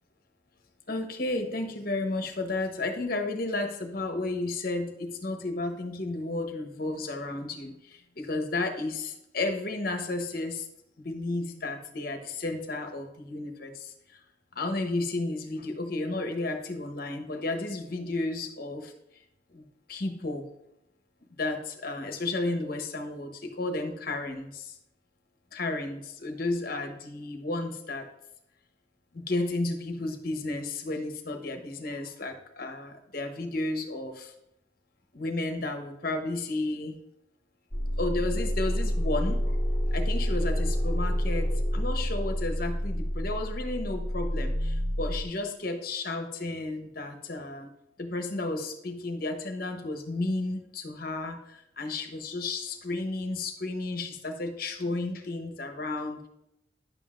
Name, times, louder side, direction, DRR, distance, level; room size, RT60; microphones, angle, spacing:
voice 1, 0.9-10.7 11.0-14.2 14.5-18.9 19.5-19.6 19.9-20.4 21.4-24.8 25.5-28.1 29.1-34.3 35.1-37.0 38.0-39.5 39.9-47.7 48.0-56.3, left 2 dB, 50° left, 5 dB, 1.0 m, -33 dB
sound 1, 37.7-45.2, equal, 15° left, 1.4 m, -28 dB
10.5 x 7.7 x 2.5 m, 0.82 s
head